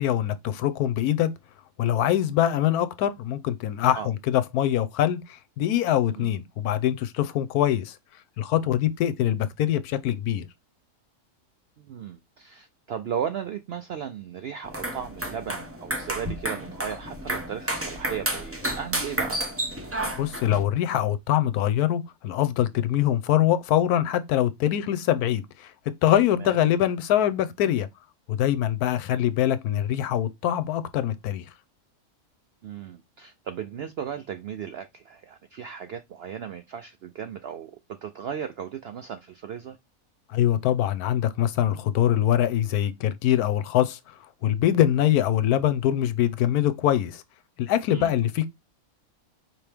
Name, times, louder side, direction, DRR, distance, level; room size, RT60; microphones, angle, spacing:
voice 1, 0.0-1.3 1.8-8.0 8.4-10.4 20.2-25.7 26.0-27.9 28.3-31.4 40.3-44.1 44.4-47.2 47.6-48.5, left 11 dB, 85° left, 1.1 m, -23 dB
voice 2, 11.8-19.5 26.4-26.6 32.6-39.8 47.9-48.2, right 8 dB, 75° right, 0.5 m, -36 dB
sound 1, 14.6-20.6, right 1 dB, 10° right, 0.7 m, -31 dB
4.8 x 3.0 x 3.3 m
omnidirectional pair, 1.6 m